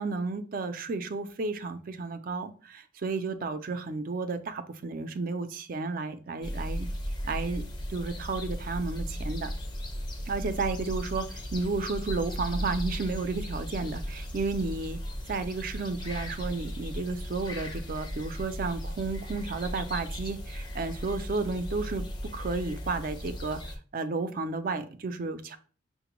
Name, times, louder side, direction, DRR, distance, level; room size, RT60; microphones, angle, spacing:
voice 1, 0.0-6.9 7.2-7.6 7.9-9.5 10.3-15.0 15.3-25.6, right 3 dB, 50° right, 10 dB, 0.4 m, -32 dB
sound 1, 6.4-23.8, equal, 25° left, 0.5 m, -36 dB
5.8 x 2.1 x 3.0 m, 0.39 s
head